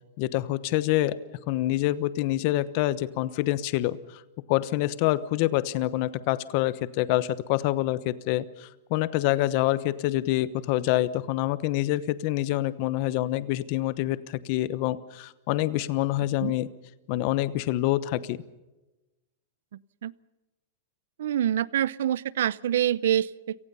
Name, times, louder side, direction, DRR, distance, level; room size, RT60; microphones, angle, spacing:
voice 1, 0.2-1.2 1.5-4.2 4.5-16.7 17.1-18.4, left 15 dB, 35° left, 17 dB, 1.0 m, -26 dB
voice 2, 21.2-23.6, right 11 dB, 70° right, 22 dB, 0.7 m, -26 dB
29.5 x 18.5 x 5.6 m, 1.1 s
supercardioid pair, 175°, 0 cm